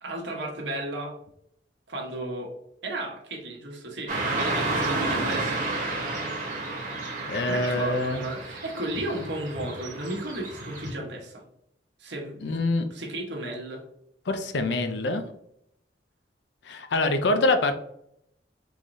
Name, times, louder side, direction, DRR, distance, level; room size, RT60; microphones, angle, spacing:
voice 1, 0.0-1.2 1.9-2.5 2.8-5.6 7.5-11.4 12.0-12.6 12.9-13.8, right 1 dB, 70° right, 1 dB, 1.0 m, -34 dB
Car passing by / Traffic noise roadway noise, 4.1-10.9, right 2 dB, 45° right, 1.2 m, -31 dB
voice 2, 7.3-8.2 12.4-12.8 14.3-15.2 16.6-17.7, left 2 dB, 65° left, 8 dB, 0.5 m, -25 dB
3.8 x 3.0 x 2.5 m, 0.75 s
head